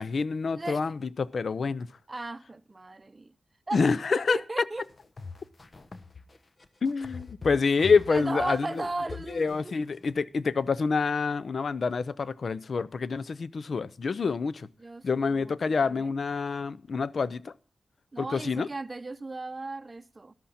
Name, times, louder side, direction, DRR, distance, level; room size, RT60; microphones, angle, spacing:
voice 1, 0.0-1.9 3.7-4.4 6.8-8.8 9.3-14.7 15.0-17.5 18.2-18.7, left 4 dB, 70° left, 0.6 m, -27 dB
voice 2, 2.1-3.3 3.7-3.8 4.1-4.9 8.1-9.8 14.8-16.1 18.1-20.3, right 2 dB, 35° right, 0.8 m, -36 dB
sound 1, 4.8-10.1, left 4 dB, 45° left, 1.2 m, -43 dB
13.0 x 11.5 x 4.2 m
cardioid pair, 55°, 0 cm